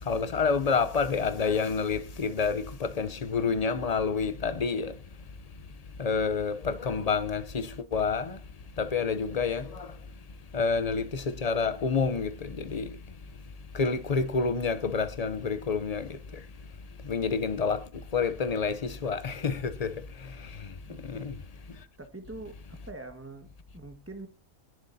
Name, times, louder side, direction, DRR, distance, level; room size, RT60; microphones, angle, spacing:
voice 1, 0.0-5.0 6.0-8.4 8.8-10.0 10.5-13.0 13.7-16.4 17.0-20.7 21.0-21.4, left 5 dB, 40° left, 0.6 m, -29 dB
voice 2, 20.9-21.2 22.0-23.5 23.7-24.3, right 2 dB, 10° right, 1.6 m, -44 dB
20.5 x 10.5 x 2.7 m
omnidirectional pair, 1.5 m